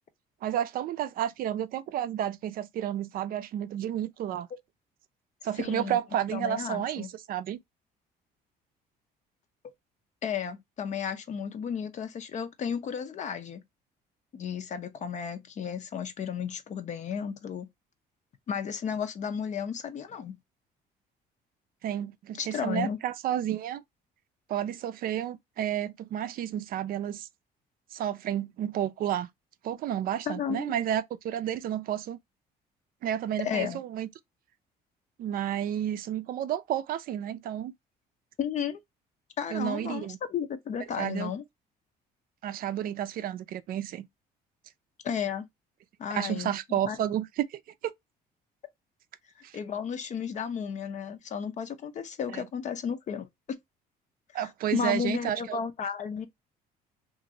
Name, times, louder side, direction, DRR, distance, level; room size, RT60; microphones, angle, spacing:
voice 1, 0.4-4.5 5.4-7.6 21.8-23.8 24.5-27.3 27.9-29.3 29.6-32.2 33.0-34.1 35.2-37.7 39.5-40.2 41.0-41.3 42.4-44.1 46.1-47.9 49.4-49.6 52.3-52.4 54.3-55.6, right 11 dB, 60° right, 0.4 m, -31 dB
voice 2, 5.6-6.0 6.3-7.1 10.2-13.6 14.3-17.7 18.5-20.4 22.3-23.0 30.3-30.7 33.4-33.8 38.4-38.8 39.4-41.4 45.0-45.5 46.0-47.0 49.5-53.3 54.3-56.3, left 7 dB, 45° left, 0.6 m, -33 dB
2.9 x 2.5 x 2.6 m
cardioid pair, 110°, 17 cm